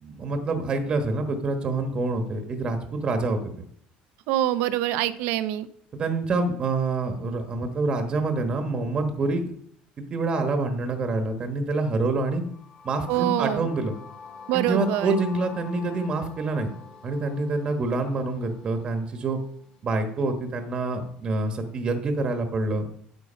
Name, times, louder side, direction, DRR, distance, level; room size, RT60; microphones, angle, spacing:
voice 1, 0.0-3.4 5.9-9.5 10.1-12.4 12.8-13.9 14.5-16.7 17.0-19.4 19.8-22.8, right 3 dB, 30° right, 5 dB, 1.2 m, -26 dB
voice 2, 4.3-5.7 13.1-13.7 14.5-15.1, right 13 dB, 80° right, 13 dB, 0.7 m, -25 dB
sound 1, 12.3-20.3, left 5 dB, 35° left, 3.2 m, -45 dB
9.8 x 8.1 x 5.1 m, 0.65 s
cardioid pair, 155°, 3 cm